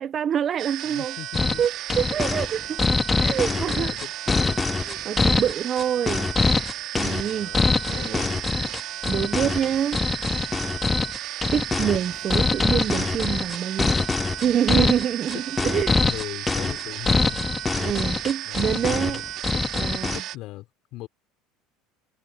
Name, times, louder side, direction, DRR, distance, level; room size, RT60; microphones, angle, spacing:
voice 1, 0.0-1.1 1.6-1.7 2.0-2.8 3.2-3.9 4.9-6.3 6.9-7.5 7.9-8.3 9.1-10.0 11.5-13.9 14.4-15.9 17.8-19.2 19.7-20.2, right 9 dB, 40° right, 0.6 m, -26 dB
sound 1, 0.6-20.4, right 14 dB, 55° right, 2.3 m, -34 dB
voice 2, 0.8-1.6 3.1-4.7 7.2-8.5 15.3-15.4 15.7-17.6 18.4-19.2 19.5-19.6 20.1-21.1, left 17 dB, 60° left, 3.7 m, -39 dB
sound 2, 1.3-20.2, left 4 dB, 15° left, 0.3 m, -24 dB
supercardioid pair, 110°, 0 cm